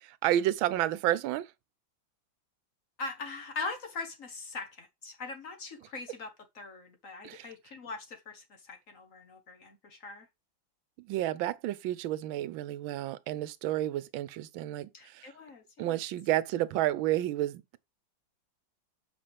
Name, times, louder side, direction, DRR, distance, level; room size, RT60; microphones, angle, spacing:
voice 1, 0.0-1.5 7.2-7.5 11.0-15.3 15.8-17.8, right 13 dB, 80° right, 1.4 m, -31 dB
voice 2, 3.0-10.3 14.9-16.0, left 3 dB, 45° left, 1.3 m, -41 dB
7.8 x 5.3 x 3.4 m
omnidirectional pair, 2.2 m